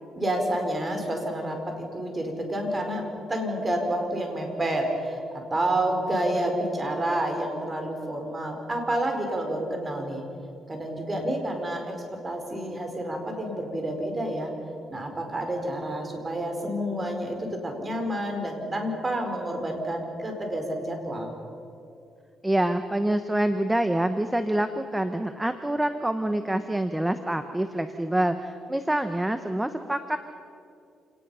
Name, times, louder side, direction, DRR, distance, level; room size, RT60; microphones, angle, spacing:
voice 1, 0.1-10.2 10.7-14.5 14.9-21.4, right 1 dB, 25° right, 3 dB, 4.7 m, -29 dB
voice 2, 22.4-30.2, right 1 dB, 10° right, 9 dB, 1.0 m, -26 dB
28.0 x 19.0 x 5.7 m, 2.6 s
cardioid pair, 90°, 0 cm